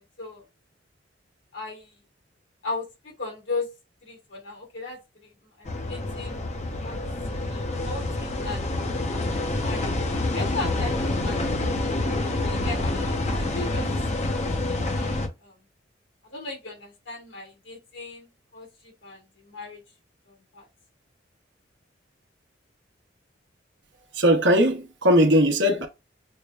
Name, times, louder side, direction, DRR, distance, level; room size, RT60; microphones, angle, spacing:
voice 1, 1.5-1.9 2.6-3.7 4.0-5.0 5.6-6.4 6.8-7.0 7.5-8.7 9.3-9.9 10.3-11.7 12.4-13.9 14.6-15.1 15.4-15.5 16.3-18.3 18.5-18.7 19.0-19.8 20.3-20.7, left 3 dB, 75° left, 1.7 m, -36 dB
sound 1, 5.6-15.3, left 2 dB, 35° left, 0.7 m, -27 dB
voice 2, 24.1-25.9, equal, 70° right, 0.9 m, -19 dB
6.4 x 2.1 x 2.3 m
head